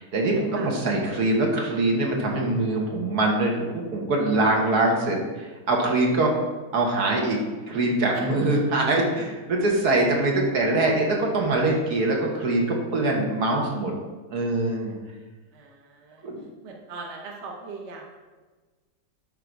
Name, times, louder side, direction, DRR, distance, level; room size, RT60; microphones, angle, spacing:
voice 1, 0.0-6.3 6.7-13.9 14.3-15.0 16.2-16.4, right 2 dB, 65° right, 0 dB, 1.7 m, -23 dB
voice 2, 15.5-16.3 16.6-18.1, right 3 dB, 45° right, 0 dB, 1.2 m, -40 dB
11.5 x 3.9 x 4.6 m, 1.3 s
omnidirectional pair, 1.8 m